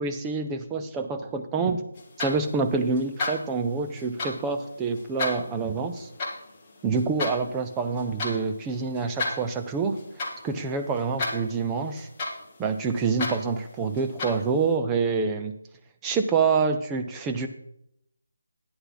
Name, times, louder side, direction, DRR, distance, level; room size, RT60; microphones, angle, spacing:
voice 1, 0.0-1.8 2.2-6.1 6.8-10.0 10.4-12.1 12.6-15.5 16.0-17.5, right 4 dB, 10° right, 6 dB, 0.5 m, -27 dB
sound 1, 1.9-14.7, left 3 dB, 15° left, 1.4 m, -36 dB
11.5 x 9.6 x 4.0 m, 0.75 s
figure-of-eight pair, 175°, 0 cm